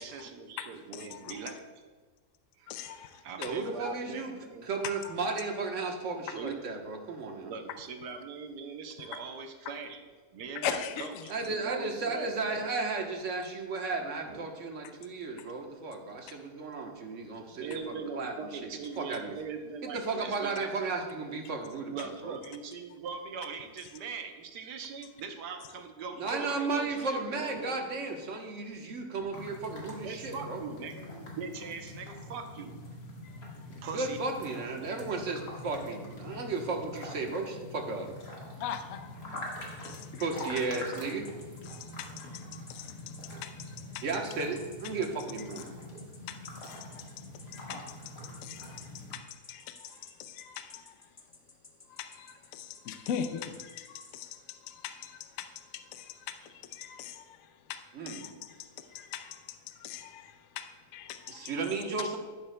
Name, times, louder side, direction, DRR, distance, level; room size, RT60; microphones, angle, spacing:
voice 1, 0.0-1.6 2.6-2.7 3.2-4.7 6.3-6.6 7.4-10.0 10.3-11.1 11.5-12.7 14.2-14.5 17.5-20.7 21.9-27.8 29.2-29.3 30.0-32.8 33.8-34.2, right 5 dB, 85° right, 1.4 m, -41 dB
voice 2, 0.6-1.5 2.7-3.6 5.0-5.1 6.3-6.4 9.0-9.3 9.6-9.7 10.6-11.5 15.4-15.5 33.2-33.8 36.3-36.4 38.6-40.3 41.6-44.0 45.4-45.6 46.3-46.4 46.6-51.3 51.9-61.5, left 8 dB, 65° left, 0.9 m, -42 dB
voice 3, 3.4-4.3 4.6-7.5 11.3-18.3 19.0-19.3 19.8-22.4 26.2-30.6 33.7-38.1 40.2-41.3 44.0-45.7 57.9-58.2 61.3-62.2, right 3 dB, 55° right, 1.4 m, -34 dB
sound 1, 29.3-49.2, left 1 dB, 80° left, 2.3 m, -45 dB
sound 2, 39.4-54.4, left 4 dB, 25° left, 0.8 m, -54 dB
11.0 x 10.5 x 2.2 m
omnidirectional pair, 1.7 m